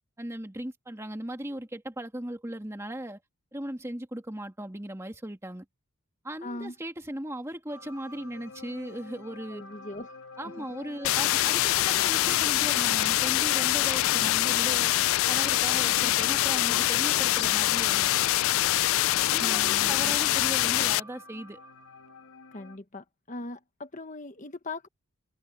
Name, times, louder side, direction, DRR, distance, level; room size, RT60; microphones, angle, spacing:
voice 1, 0.2-3.2 3.5-5.6 6.2-9.6 10.4-14.9 15.3-18.3 19.3-21.6, right 1 dB, 10° right, 1.8 m, -38 dB
voice 2, 6.4-6.7 9.5-10.1 10.6-10.7 19.4-20.2 22.5-24.9, left 2 dB, 35° left, 1.3 m, -39 dB
sound 1, 7.7-22.8, left 3 dB, 85° left, 2.3 m, -48 dB
sound 2, 11.0-21.0, left 15 dB, 65° left, 0.3 m, -24 dB
head